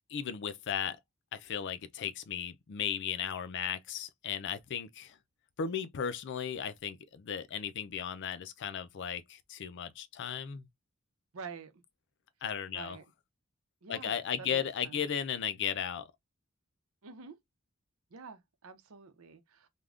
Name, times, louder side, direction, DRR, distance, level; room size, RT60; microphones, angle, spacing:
voice 1, 0.1-1.0 1.3-5.2 5.6-10.6 12.4-13.0 13.9-16.1, left 8 dB, 60° left, 0.4 m, -35 dB
voice 2, 11.3-11.7 12.7-13.1 13.8-15.0 17.0-17.4 18.1-19.7, right 5 dB, 90° right, 0.7 m, -48 dB
3.4 x 2.2 x 2.4 m
head